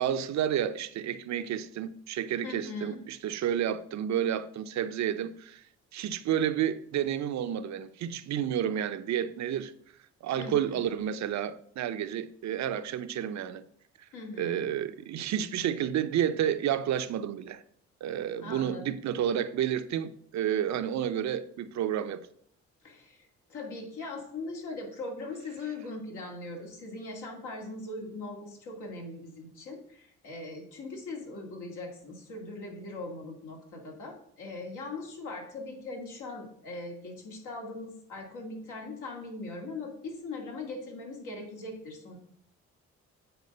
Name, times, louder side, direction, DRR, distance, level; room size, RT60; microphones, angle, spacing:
voice 1, 0.0-5.6 5.9-9.7 10.2-13.6 14.4-17.6 18.0-22.2, right 10 dB, 65° right, 0.6 m, -30 dB
voice 2, 2.4-3.1 10.4-10.8 14.1-14.7 18.4-18.8 22.8-42.2, left 2 dB, 80° left, 2.3 m, -40 dB
8.0 x 4.5 x 5.3 m
cardioid pair, 90°, 30 cm